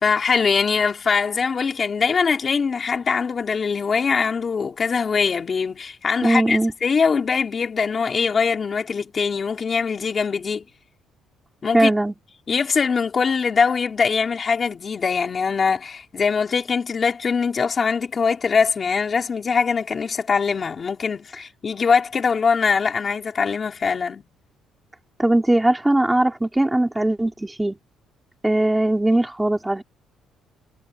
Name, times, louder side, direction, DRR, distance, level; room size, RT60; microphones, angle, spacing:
voice 1, 0.0-10.6 11.6-11.9 12.5-24.2, left 5 dB, 25° left, 3.6 m, -22 dB
voice 2, 6.2-6.7 11.7-12.1 25.2-27.8 28.4-29.8, right 1 dB, 5° right, 2.1 m, -19 dB
cardioid pair, 180°, 0 cm